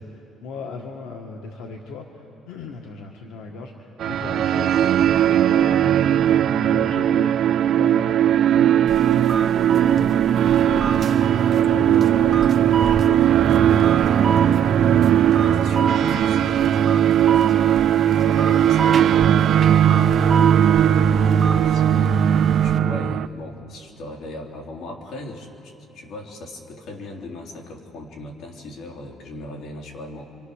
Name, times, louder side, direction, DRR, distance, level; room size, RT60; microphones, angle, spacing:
voice 1, 0.0-10.2 10.6-11.2 11.5-14.0 14.4-14.6 19.8-20.4, left 4 dB, 90° left, 2 dB, 1.7 m, -37 dB
sound 1, 4.0-23.3, right 9 dB, 55° right, 0.5 m, -18 dB
sound 2, 8.9-22.8, right 5 dB, 35° right, 0.9 m, -31 dB
voice 2, 15.4-19.2 20.7-22.1 22.6-30.3, left 1 dB, 65° left, 1 dB, 3.4 m, -38 dB
29.5 x 25.0 x 6.6 m, 2.9 s
cardioid pair, 130°, 0 cm